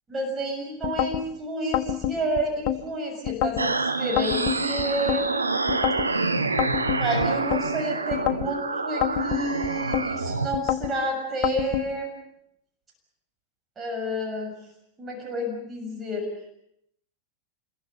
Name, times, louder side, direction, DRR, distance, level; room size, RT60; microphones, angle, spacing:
voice 1, 0.1-5.7 7.0-12.2 13.8-14.5 15.0-16.3, right 1 dB, 20° right, 1 dB, 6.8 m, -30 dB
sound 1, 0.8-1.2 1.7-2.8 3.3-3.7 4.2-5.2 5.7-6.1 6.6-7.6 8.1-8.5 9.0-10.1 10.5-10.9 11.4-11.9, left 11 dB, 45° left, 1.3 m, -27 dB
sound 2, 3.6-10.5, right 3 dB, 80° right, 1.2 m, -27 dB
27.0 x 22.5 x 7.0 m, 0.73 s
figure-of-eight pair, 90°, 0 cm